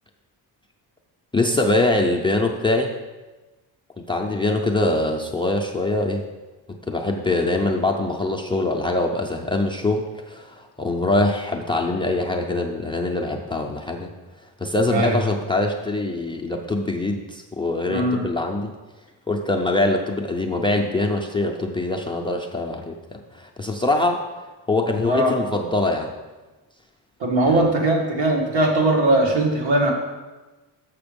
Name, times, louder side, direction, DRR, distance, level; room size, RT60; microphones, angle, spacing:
voice 1, 1.3-2.9 4.1-6.2 6.9-14.1 14.6-18.7 19.3-24.3 24.7-26.1 27.4-27.6, left 2 dB, 15° left, 3 dB, 0.3 m, -23 dB
voice 2, 17.9-18.2 25.0-25.3 27.2-29.9, right 1 dB, 85° right, -1 dB, 1.9 m, -20 dB
6.9 x 6.4 x 5.1 m, 1.2 s
wide cardioid pair, 175°, 43 cm